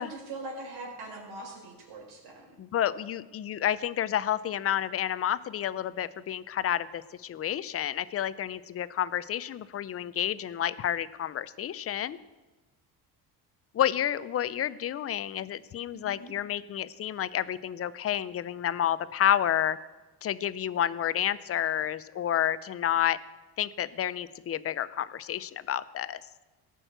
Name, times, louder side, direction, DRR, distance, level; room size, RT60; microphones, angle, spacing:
voice 1, 0.0-2.5 15.9-16.3, right 2 dB, 70° right, 0 dB, 4.5 m, -42 dB
voice 2, 2.6-12.2 13.7-19.8 20.2-23.2 23.6-26.2, left 10 dB, 35° left, 16 dB, 0.5 m, -30 dB
17.5 x 6.2 x 7.9 m, 1.2 s
cardioid pair, 130°, 39 cm